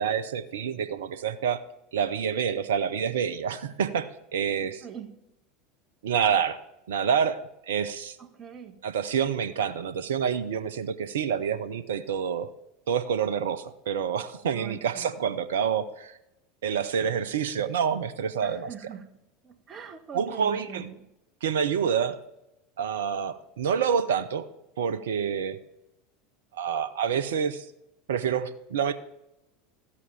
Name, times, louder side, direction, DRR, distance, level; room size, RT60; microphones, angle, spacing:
voice 1, 0.0-1.6 1.9-4.8 6.0-6.6 6.9-8.2 8.8-12.5 12.9-16.2 16.6-18.7 20.1-20.9 21.4-22.2 22.8-24.4 24.8-25.6 26.5-27.7 28.1-28.9, right 7 dB, 70° right, 14 dB, 0.7 m, -27 dB
voice 2, 4.8-5.1 8.2-8.8 14.5-15.4 18.4-19.1 19.4-21.0, right 8 dB, 30° right, 7 dB, 1.4 m, -42 dB
14.0 x 8.5 x 3.4 m, 0.88 s
figure-of-eight pair, 80°, 0 cm